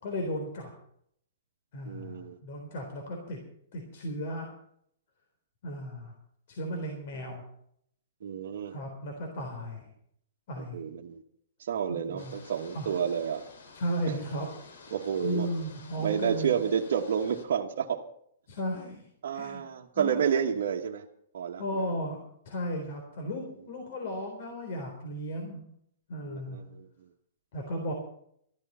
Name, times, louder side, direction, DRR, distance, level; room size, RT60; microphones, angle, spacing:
voice 1, 0.0-0.7 1.7-3.4 3.7-4.5 5.6-6.1 6.5-7.4 8.7-9.9 10.5-10.8 11.9-12.3 12.7-12.9 13.7-14.5 15.2-16.5 18.5-19.0 19.3-19.6 19.9-20.4 21.6-22.2 22.5-25.6 26.1-26.6 27.5-27.9, equal, 60° left, 2 dB, 3.8 m, -35 dB
voice 2, 1.9-2.4 8.2-8.7 10.6-11.2 11.6-13.4 14.1-14.2 14.9-15.5 16.0-18.0 19.2-21.0 21.3-21.8 26.2-26.9, right 7 dB, 70° right, 0 dB, 1.2 m, -30 dB
sound 1, 12.2-17.4, left 4 dB, 80° left, 2.8 m, -51 dB
14.5 x 12.0 x 5.6 m, 0.69 s
hypercardioid pair, 140°, 0 cm